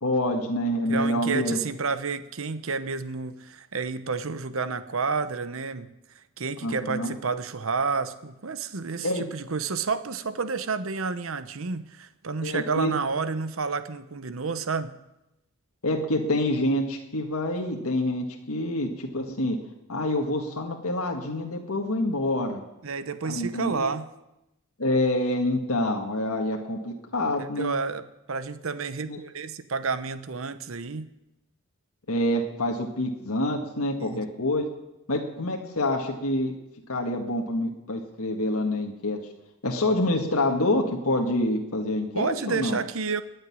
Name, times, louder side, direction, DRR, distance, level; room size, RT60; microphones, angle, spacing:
voice 1, 0.0-1.6 6.6-7.1 9.0-9.2 12.4-12.9 15.8-19.6 19.9-22.6 23.2-23.9 24.8-27.7 29.1-29.2 32.1-34.7 35.1-36.5 36.9-39.2 39.6-42.8, left 1 dB, 80° left, 2 dB, 1.7 m, -27 dB
voice 2, 0.9-15.0 22.8-24.1 27.4-31.1 34.0-34.2 42.1-43.2, right 4 dB, 65° right, 13 dB, 0.9 m, -30 dB
19.5 x 6.7 x 9.8 m, 0.92 s
head